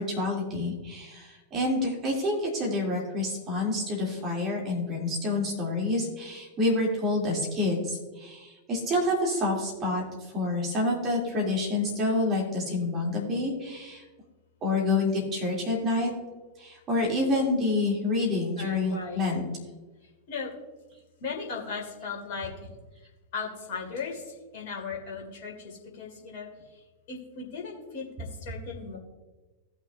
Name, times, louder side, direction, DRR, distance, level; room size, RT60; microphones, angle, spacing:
voice 1, 0.0-14.0 14.6-16.1 16.6-19.4, left 2 dB, 30° right, -2 dB, 3.0 m, -28 dB
voice 2, 18.6-19.2 20.3-20.5 21.2-22.7 23.3-26.5 27.1-29.0, left 5 dB, 50° left, 0 dB, 2.2 m, -37 dB
17.0 x 6.1 x 2.6 m, 1.2 s
figure-of-eight pair, 90°, 0 cm